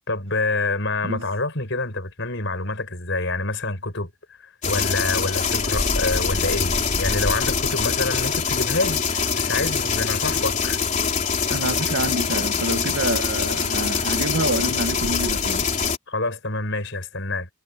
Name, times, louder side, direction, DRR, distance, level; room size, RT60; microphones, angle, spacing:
voice 1, 0.1-4.1 4.4-10.8 16.1-17.5, left 2 dB, 55° left, 6.9 m, -27 dB
sound 1, 4.6-16.0, left 5 dB, 35° left, 3.9 m, -24 dB
voice 2, 11.5-15.7, right 1 dB, 60° right, 2.3 m, -27 dB
head